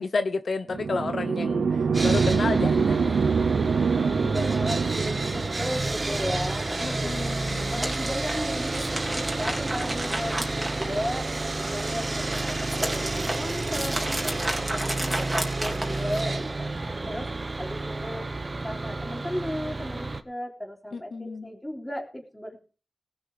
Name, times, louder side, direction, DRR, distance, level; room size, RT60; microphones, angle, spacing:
voice 1, 0.0-3.3 6.8-7.8 20.9-21.5, left 4 dB, 65° left, 0.8 m, -31 dB
sound 1, 0.7-5.6, right 5 dB, 85° right, 0.7 m, -24 dB
Sawing, 1.9-20.2, right 2 dB, 35° right, 1.1 m, -30 dB
voice 2, 4.2-7.3 7.7-11.3 11.6-17.3 17.6-18.3 18.6-22.6, equal, 10° left, 3.8 m, -35 dB
sound 2, 7.2-11.4 11.7-16.4, right 1 dB, 15° right, 3.1 m, -33 dB
19.0 x 6.9 x 5.1 m
wide cardioid pair, 100°, 0 cm